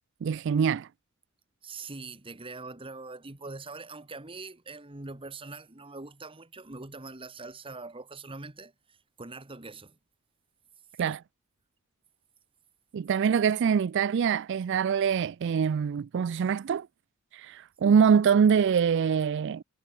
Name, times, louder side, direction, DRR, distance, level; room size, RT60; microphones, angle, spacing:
voice 1, 0.2-0.9 11.0-11.2 12.9-16.9 17.3-19.6, right 7 dB, 60° right, 0.3 m, -24 dB
voice 2, 1.6-10.0, right 3 dB, 25° right, 1.6 m, -43 dB
head